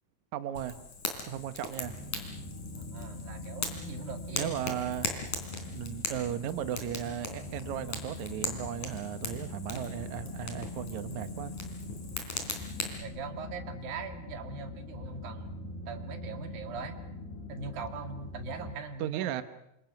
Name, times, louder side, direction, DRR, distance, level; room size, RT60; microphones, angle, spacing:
voice 1, 0.3-0.8 1.3-2.0 4.3-5.1 5.7-11.5 19.0-19.4, right 10 dB, 85° right, 10 dB, 1.6 m, -36 dB
Fire, 0.5-13.0, left 4 dB, 50° left, 4.6 m, -40 dB
sound 1, 1.8-18.8, left 2 dB, 65° left, 4.0 m, -42 dB
voice 2, 2.7-4.7 13.0-17.0 17.5-19.4, right 5 dB, 60° right, 5 dB, 3.8 m, -41 dB
28.0 x 26.5 x 6.0 m, 0.82 s
omnidirectional pair, 4.9 m